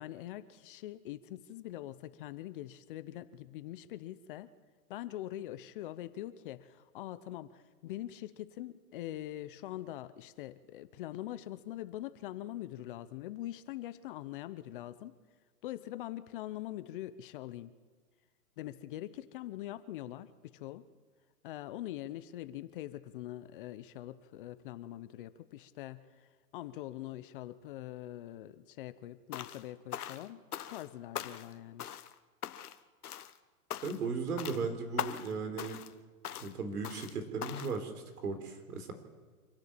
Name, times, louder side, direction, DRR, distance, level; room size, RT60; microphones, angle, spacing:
voice 1, 0.0-4.5 4.9-15.2 15.6-17.7 18.6-20.8 21.4-30.4 30.7-31.8, left 14 dB, 35° left, 14 dB, 0.8 m, -43 dB
sound 1, 29.3-29.6 29.9-30.9 31.1-31.5 31.8-32.1 32.4-32.8 33.0-33.4 33.7-34.1 34.4-34.6 35.0-35.3 35.6-35.9 36.2-36.5 36.8-37.1 37.4-37.8, left 10 dB, 70° left, 1.3 m, -41 dB
voice 2, 33.8-35.8 36.4-38.9, right 4 dB, 70° right, 7 dB, 4.1 m, -36 dB
25.5 x 11.5 x 8.7 m, 1.5 s
hypercardioid pair, 140°, 46 cm